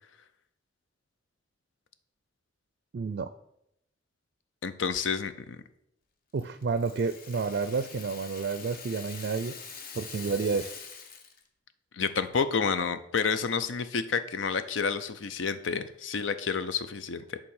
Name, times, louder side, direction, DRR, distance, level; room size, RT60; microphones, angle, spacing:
voice 1, 2.9-3.3 6.3-9.6 9.9-10.7, right 4 dB, 55° right, 12 dB, 0.4 m, -30 dB
voice 2, 4.6-5.6 11.9-17.4, left 5 dB, 90° left, 12 dB, 0.6 m, -29 dB
Rattle (instrument), 6.4-11.5, left 6 dB, 50° left, 0.8 m, -45 dB
8.6 x 3.8 x 6.4 m, 0.78 s
head